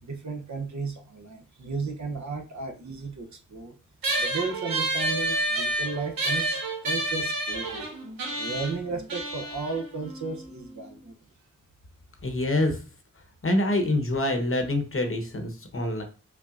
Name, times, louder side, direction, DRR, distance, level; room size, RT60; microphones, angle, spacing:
voice 1, 0.0-3.7 4.2-7.9 8.4-11.2, right 4 dB, 55° right, 4 dB, 0.8 m, -34 dB
sound 1, 4.0-10.8, right 1 dB, 85° right, 0.9 m, -30 dB
voice 2, 12.2-12.8 13.4-16.0, left 1 dB, 40° left, 5 dB, 0.9 m, -26 dB
5.8 x 2.0 x 2.5 m, 0.36 s
cardioid pair, 50°, 34 cm